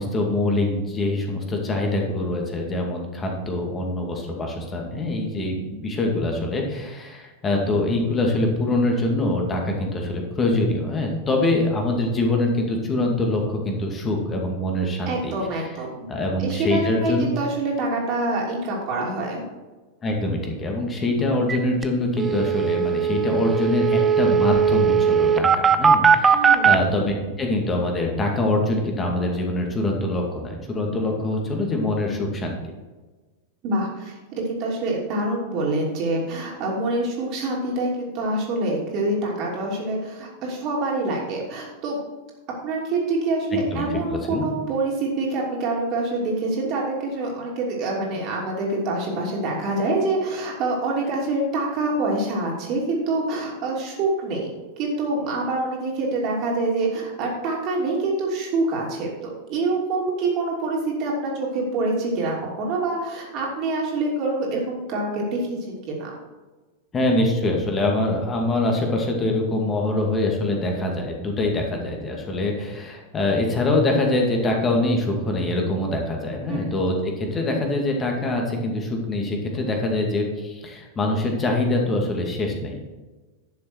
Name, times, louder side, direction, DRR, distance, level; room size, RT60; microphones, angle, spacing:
voice 1, 0.0-15.7 16.1-17.3 20.0-32.6 43.5-44.5 66.9-82.8, left 2 dB, 20° left, 1 dB, 2.3 m, -24 dB
voice 2, 15.1-16.1 16.4-19.4 26.3-26.7 33.6-42.0 42.6-54.5 54.8-59.1 59.5-66.1 76.5-76.7, right 2 dB, 40° right, -2 dB, 2.9 m, -26 dB
sound 1, 21.5-21.6 21.8-21.9 22.2-26.8, right 7 dB, 20° right, 0.6 m, -18 dB
11.5 x 6.7 x 4.6 m, 1.3 s
figure-of-eight pair, 90°, 0 cm